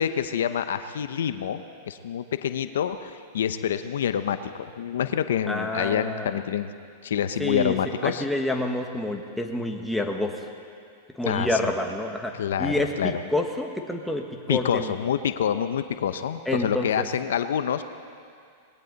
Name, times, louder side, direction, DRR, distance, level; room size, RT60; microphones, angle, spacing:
voice 1, 0.0-6.7 7.0-8.2 11.2-11.7 12.4-13.1 14.5-17.8, left 9 dB, 85° left, 10 dB, 0.7 m, -27 dB
voice 2, 5.5-6.4 7.4-7.8 8.0-10.5 11.1-12.3 12.6-14.9 16.4-17.1, left 1 dB, 5° left, 2 dB, 1.4 m, -28 dB
20.5 x 17.5 x 4.0 m, 2.3 s
hypercardioid pair, 130°, 0 cm